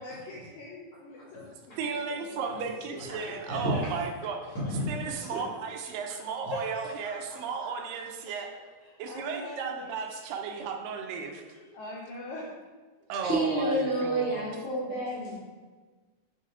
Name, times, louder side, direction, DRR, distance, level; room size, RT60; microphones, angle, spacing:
voice 1, 0.0-1.8 2.1-2.4 2.9-3.0 3.5-3.9 5.0-5.2 6.5-8.3 8.8-9.9 11.5-12.5, left 1 dB, 75° left, -4 dB, 1.8 m, -43 dB
voice 2, 1.8-4.6 4.9-8.5 9.0-11.4 13.1-14.5, right 5 dB, 80° right, 3 dB, 2.2 m, -34 dB
voice 3, 4.5-5.4 13.2-15.4, right 1 dB, 45° left, -9 dB, 2.3 m, -30 dB
6.6 x 4.0 x 3.7 m, 1.4 s
omnidirectional pair, 4.0 m